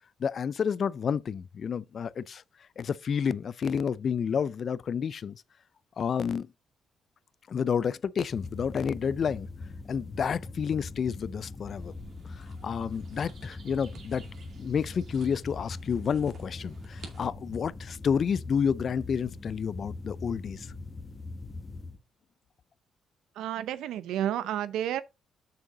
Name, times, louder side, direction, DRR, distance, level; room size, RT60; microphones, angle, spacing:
voice 1, 0.2-2.4 2.8-5.4 6.0-6.5 7.5-9.5 9.9-11.9 12.4-14.3 14.6-20.7, left 7 dB, 50° left, 0.4 m, -30 dB
sound 1, 8.3-22.0, left 3 dB, 25° left, 1.2 m, -42 dB
sound 2, 11.8-17.3, right 5 dB, 60° right, 2.3 m, -52 dB
voice 2, 23.3-25.0, right 11 dB, 85° right, 0.6 m, -31 dB
6.9 x 6.5 x 3.7 m
cardioid pair, 90°, 0 cm